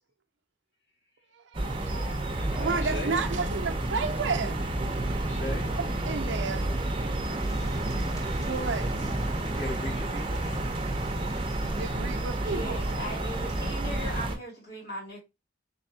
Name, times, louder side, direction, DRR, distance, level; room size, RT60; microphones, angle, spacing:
voice 1, 1.3-2.2 2.6-4.6 6.1-6.6 8.4-9.1 11.7-13.0, right 4 dB, 80° right, 0.5 m, -32 dB
sound 1, 1.5-14.4, right 1 dB, 30° right, 0.7 m, -30 dB
voice 2, 2.2-3.2 5.3-5.7 9.5-10.4, left 1 dB, 75° left, 2.1 m, -38 dB
sound 2, 6.6-11.9, right 1 dB, 20° left, 0.8 m, -45 dB
voice 3, 12.4-15.2, equal, 60° left, 2.5 m, -38 dB
3.9 x 3.5 x 2.7 m
head